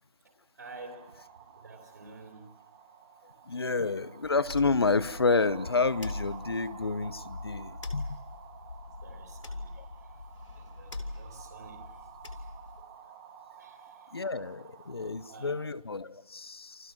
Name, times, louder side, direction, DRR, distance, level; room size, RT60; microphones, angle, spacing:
voice 1, 0.2-2.5 9.0-10.2 10.5-12.5 12.8-12.9 13.5-14.2 15.0-15.6, right 3 dB, 40° right, 2 dB, 3.3 m, -51 dB
sound 1, 0.6-15.4, right 7 dB, 10° right, 1.9 m, -51 dB
voice 2, 3.5-8.2 9.8-9.9 14.1-16.9, left 4 dB, 45° left, 17 dB, 1.0 m, -29 dB
sound 2, 4.2-12.8, left 2 dB, 65° left, 3.4 m, -42 dB
29.0 x 27.5 x 6.1 m, 0.99 s
figure-of-eight pair, 170°, 18 cm